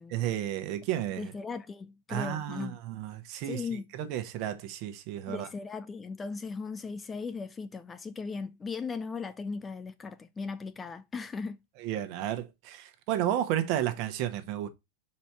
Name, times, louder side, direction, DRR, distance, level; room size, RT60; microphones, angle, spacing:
voice 1, 0.1-1.3 2.1-3.7 3.9-5.5 11.8-14.7, right 11 dB, 45° right, 1.2 m, -32 dB
voice 2, 1.2-2.8 3.5-3.8 5.3-11.6, left 4 dB, 15° left, 0.5 m, -37 dB
5.7 x 4.4 x 4.3 m
figure-of-eight pair, 90°, 0 cm